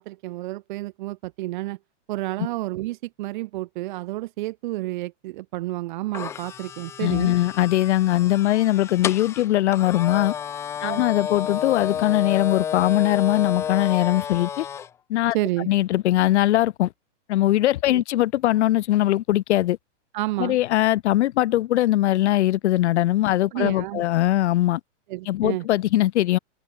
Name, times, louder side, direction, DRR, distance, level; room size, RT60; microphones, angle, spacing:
voice 1, 0.0-1.8 2.1-7.3 10.8-11.0 15.3-15.7 17.9-18.0 20.1-20.6 23.5-24.0 25.1-25.7, right 18 dB, 40° right, 1.1 m, -30 dB
sound 1, 6.1-14.9, left 8 dB, 5° left, 0.5 m, -31 dB
voice 2, 7.0-10.3 10.8-14.7 15.1-15.4 15.7-16.9 17.3-19.8 20.4-24.8 25.3-26.4, left 14 dB, 65° left, 0.6 m, -21 dB
hypercardioid pair, 160°, 37 cm